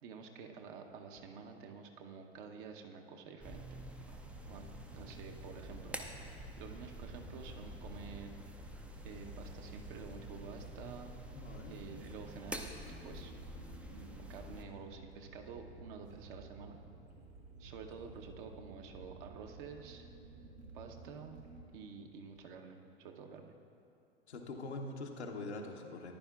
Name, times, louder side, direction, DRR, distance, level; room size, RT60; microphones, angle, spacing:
voice 1, 0.0-3.8 4.1-4.7 4.9-8.3 9.0-11.1 11.7-12.6 13.0-13.3 13.9-16.8 17.6-20.1 20.7-21.4 21.7-23.6, right 5 dB, 50° right, 3 dB, 1.0 m, -50 dB
sound 1, 3.4-14.6, equal, 5° right, 0.4 m, -48 dB
sound 2, 4.2-21.6, right 3 dB, 85° right, 1.4 m, -54 dB
voice 2, 11.3-11.8 24.3-26.1, left 2 dB, 80° left, 2 dB, 1.0 m, -43 dB
14.0 x 10.5 x 2.4 m, 2.6 s
figure-of-eight pair, 90°, 33 cm